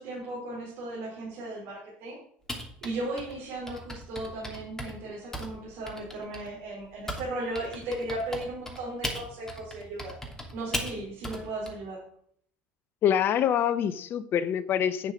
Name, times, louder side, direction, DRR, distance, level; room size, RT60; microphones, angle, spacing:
voice 1, 0.0-2.2 2.8-10.1 10.5-12.0, right 2 dB, 70° right, 4.8 m, -36 dB
Typing, 2.5-7.3 7.5-11.7, equal, 10° left, 2.9 m, -37 dB
voice 2, 13.0-15.1, left 9 dB, 50° left, 0.8 m, -25 dB
9.5 x 6.7 x 6.1 m
supercardioid pair, 90°, 5 cm